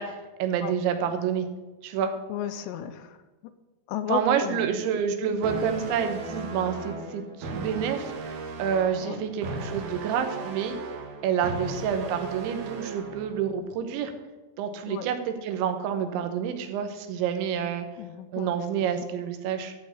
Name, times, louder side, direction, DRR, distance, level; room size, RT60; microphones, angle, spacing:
voice 1, 0.0-1.5 1.8-2.1 4.1-8.1 8.6-10.8 11.2-14.1 14.6-17.9 18.3-19.7, right 8 dB, 85° right, 7 dB, 3.4 m, -28 dB
voice 2, 2.3-3.2 3.9-4.7 9.0-9.2 14.9-15.1 18.0-18.5, left 9 dB, 80° left, 10 dB, 2.7 m, -33 dB
sound 1, 5.4-13.4, right 3 dB, 65° right, 3.1 m, -36 dB
14.0 x 5.1 x 8.2 m, 1.2 s
omnidirectional pair, 5.2 m